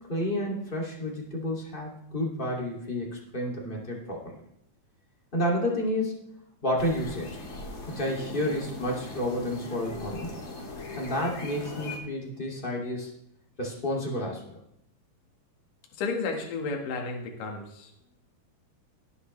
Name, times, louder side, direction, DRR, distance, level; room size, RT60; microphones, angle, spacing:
voice 1, 0.1-4.4 5.3-6.2 6.6-7.4 7.9-10.3 11.0-13.1 13.6-14.4, left 1 dB, 20° left, -2 dB, 1.8 m, -30 dB
sound 1, 6.8-12.0, left 2 dB, 40° left, 2.1 m, -40 dB
voice 2, 16.0-17.9, left 4 dB, 65° left, 1 dB, 3.1 m, -32 dB
18.0 x 8.0 x 3.3 m, 0.76 s
omnidirectional pair, 4.4 m